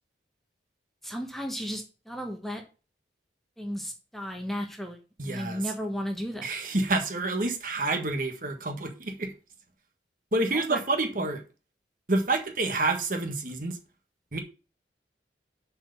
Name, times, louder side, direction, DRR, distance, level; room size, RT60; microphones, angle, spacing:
voice 1, 1.0-2.6 3.6-6.5 10.5-10.8, equal, ahead, 1.2 m, -34 dB
voice 2, 5.2-5.6 6.4-9.3 10.3-11.4 12.1-13.8 14.3-14.4, right 2 dB, 50° right, 1.5 m, -28 dB
7.3 x 4.7 x 6.9 m
head